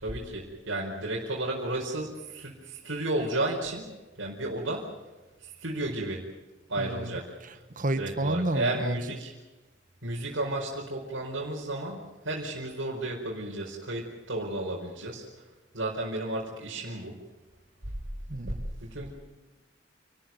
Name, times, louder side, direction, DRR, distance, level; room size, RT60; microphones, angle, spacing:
voice 1, 0.0-3.9 4.2-4.9 5.6-6.2 6.7-7.3 8.0-9.3 10.0-15.2 15.7-17.1 18.8-19.1, right 2 dB, 80° right, -4 dB, 4.9 m, -33 dB
voice 2, 6.8-9.0 18.3-18.7, right 1 dB, 40° right, 10 dB, 1.3 m, -31 dB
28.5 x 13.5 x 9.4 m, 1.1 s
head